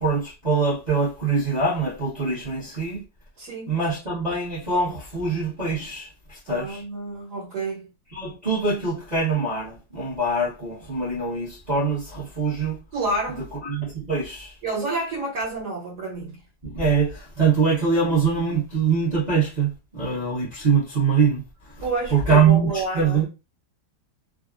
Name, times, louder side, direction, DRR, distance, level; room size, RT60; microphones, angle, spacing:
voice 1, 0.0-3.0 3.7-6.8 8.1-12.8 13.4-14.6 16.6-21.8 22.1-23.3, right 5 dB, 35° right, 0.7 m, -23 dB
voice 2, 3.4-3.7 6.5-7.9 12.9-13.4 14.6-16.4 21.8-23.2, right 2 dB, 65° right, 1.5 m, -29 dB
3.4 x 2.0 x 2.4 m
omnidirectional pair, 1.9 m